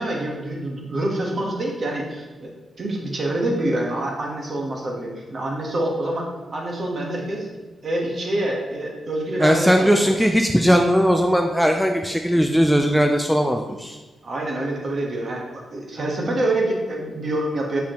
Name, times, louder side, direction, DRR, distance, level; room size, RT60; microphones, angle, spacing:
voice 1, 0.0-2.5 2.8-7.5 7.8-10.2 14.2-15.4 15.7-17.8, right 1 dB, 45° right, 0 dB, 1.3 m, -26 dB
voice 2, 9.4-14.0, equal, ahead, 4 dB, 0.3 m, -18 dB
6.7 x 5.2 x 3.0 m, 1.3 s
wide cardioid pair, 125°, 0 cm